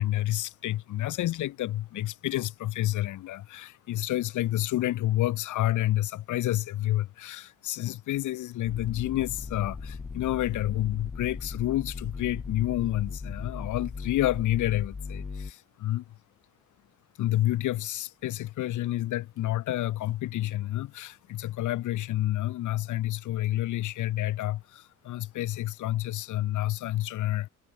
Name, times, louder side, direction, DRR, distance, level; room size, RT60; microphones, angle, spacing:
voice 1, 0.0-16.0 17.2-27.5, left 15 dB, 75° left, 1.2 m, -29 dB
sound 1, 8.7-15.5, left 4 dB, 25° left, 2.1 m, -38 dB
cardioid pair, 90°, 30 cm